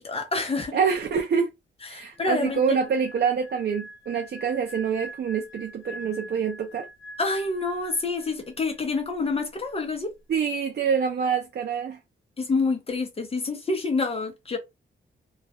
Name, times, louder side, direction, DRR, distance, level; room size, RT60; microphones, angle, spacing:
voice 1, 0.0-0.8 1.9-2.8 7.2-10.1 12.4-14.6, left 3 dB, 30° left, 0.6 m, -27 dB
voice 2, 0.7-1.5 1.9-6.9 10.3-12.0, right 6 dB, 55° right, 0.4 m, -26 dB
sound 1, 2.1-8.5 8.8-9.1, equal, 70° left, 0.9 m, -44 dB
2.3 x 2.0 x 2.7 m
wide cardioid pair, 140°, 21 cm